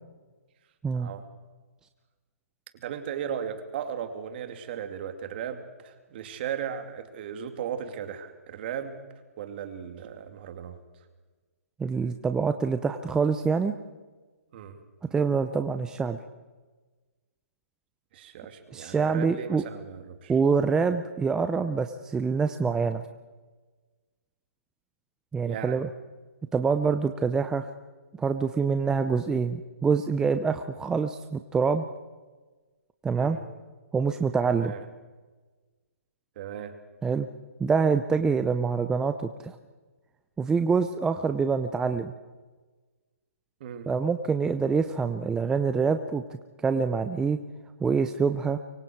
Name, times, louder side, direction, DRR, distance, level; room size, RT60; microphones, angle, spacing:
voice 1, 0.9-1.2 2.7-9.0 9.4-10.8 14.5-14.8 18.1-20.3 25.4-25.8 33.1-33.4 34.5-34.8 36.4-36.7 43.6-43.9, right 8 dB, 45° right, 7 dB, 2.8 m, -36 dB
voice 2, 11.8-13.7 15.1-16.2 18.7-19.6 20.3-23.0 25.3-25.9 26.5-27.7 28.2-31.8 33.0-33.4 33.9-34.7 37.0-37.3 37.6-39.6 40.4-42.1 43.9-46.2 46.6-47.4 47.8-48.6, right 5 dB, 10° right, 8 dB, 0.7 m, -25 dB
24.5 x 24.0 x 4.7 m, 1.3 s
hypercardioid pair, 145°, 8 cm